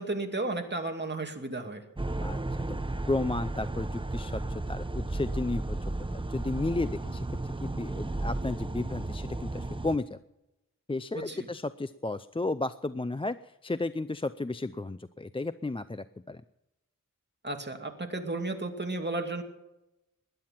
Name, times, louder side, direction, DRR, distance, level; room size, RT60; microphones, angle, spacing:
voice 1, 0.0-1.8 11.3-11.4 17.4-19.4, right 2 dB, 30° right, 4 dB, 2.3 m, -33 dB
sound 1, 2.0-10.0, right 2 dB, 15° right, 0.8 m, -34 dB
voice 2, 2.7-5.8 6.1-10.2 10.9-16.4, left 2 dB, 15° left, 13 dB, 0.5 m, -33 dB
20.0 x 10.5 x 5.8 m, 0.93 s
wide cardioid pair, 85°, 33 cm